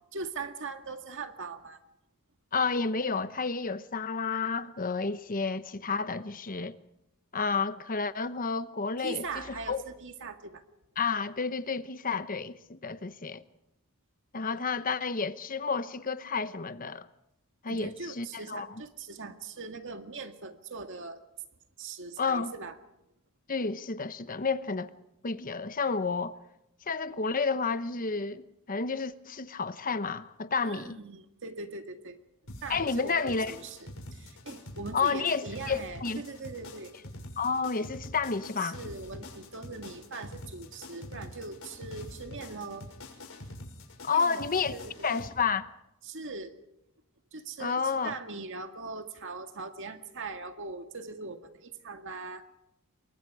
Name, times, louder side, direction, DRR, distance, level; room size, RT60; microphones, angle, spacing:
voice 1, 0.1-1.8 9.0-10.6 17.7-21.2 21.8-22.8 30.6-32.2 32.6-36.9 38.6-42.9 44.1-44.4 44.7-44.9 46.0-46.5 47.3-52.4, right 4 dB, 55° right, 2.0 m, -41 dB
voice 2, 2.5-6.8 7.3-9.8 11.0-13.4 14.3-17.1 17.6-18.7 22.2-22.5 23.5-24.9 25.2-26.3 26.9-31.0 32.7-33.5 34.9-36.2 37.4-38.8 44.0-44.7 45.0-45.7 47.6-48.2, left 4 dB, 40° left, 1.0 m, -30 dB
sound 1, 32.5-45.3, left 1 dB, 65° left, 6.3 m, -45 dB
28.0 x 23.5 x 4.9 m
head